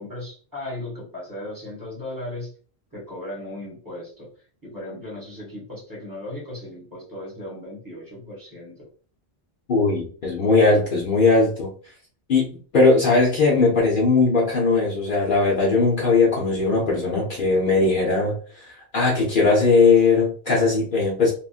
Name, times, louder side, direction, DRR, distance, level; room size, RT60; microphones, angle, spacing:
voice 1, 0.0-2.5 2.9-4.3 4.6-8.9, left 1 dB, 20° right, -5 dB, 1.4 m, -36 dB
voice 2, 9.7-11.7 12.3-21.3, left 3 dB, 55° left, -3 dB, 0.8 m, -19 dB
2.9 x 2.4 x 2.4 m, 0.41 s
omnidirectional pair, 1.1 m